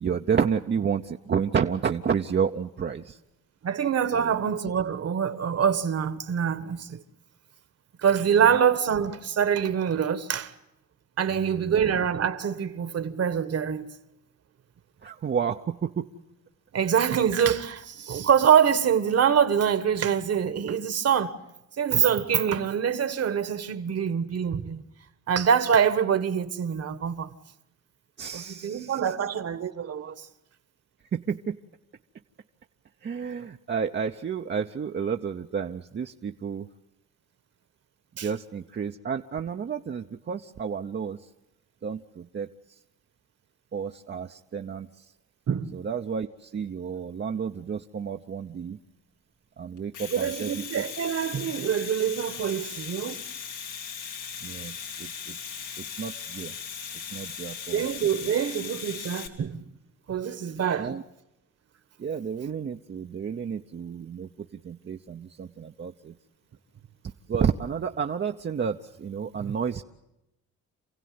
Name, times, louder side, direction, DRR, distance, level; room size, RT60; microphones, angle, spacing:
voice 1, 0.0-3.2 4.1-4.3 11.3-11.9 15.0-16.1 28.2-29.0 31.1-31.6 33.0-36.7 38.2-41.2 41.8-42.5 43.7-45.0 45.7-48.8 49.6-50.5 50.8-50.9 54.4-56.6 57.1-57.8 60.8-61.0 62.0-66.2 67.3-69.8, right 7 dB, 35° right, 0.8 m, -31 dB
voice 2, 3.6-7.0 8.0-10.5 11.2-13.9 16.7-21.3 21.8-24.8 25.3-27.3 28.3-30.3 38.2-38.3 45.5-45.8 50.1-53.2 57.7-59.6 60.1-60.9 69.4-69.5, right 8 dB, 55° right, 1.5 m, -25 dB
Domestic sounds home sounds, 49.8-59.3, left 7 dB, 80° left, 2.7 m, -38 dB
28.0 x 16.0 x 9.5 m
cardioid pair, 90°, 30 cm